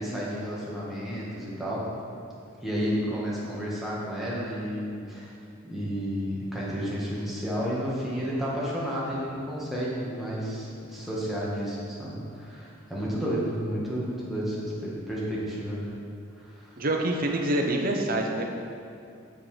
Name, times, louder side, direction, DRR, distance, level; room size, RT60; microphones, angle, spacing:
voice 1, 0.0-1.8 2.6-5.3 5.6-15.9 16.4-16.7, equal, ahead, -7 dB, 1.8 m, -31 dB
voice 2, 16.8-18.4, right 1 dB, 45° right, 2 dB, 0.9 m, -26 dB
7.8 x 6.6 x 5.1 m, 2.4 s
head